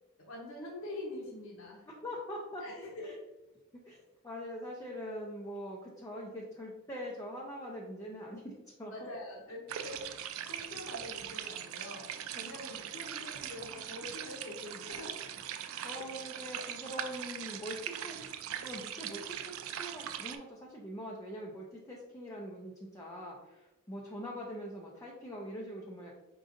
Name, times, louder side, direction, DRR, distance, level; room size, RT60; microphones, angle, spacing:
voice 1, 0.2-1.8 2.6-3.1 8.9-15.2 16.1-16.2, left 1 dB, 65° left, -3 dB, 0.9 m, -45 dB
voice 2, 2.0-3.2 3.9-8.5 8.8-8.9 12.3-12.5 15.8-18.2 18.6-26.1, equal, 15° left, -3 dB, 0.5 m, -43 dB
sound 1, 9.7-20.4, right 9 dB, 70° right, 0.4 m, -41 dB
5.0 x 3.8 x 2.5 m, 1.0 s
head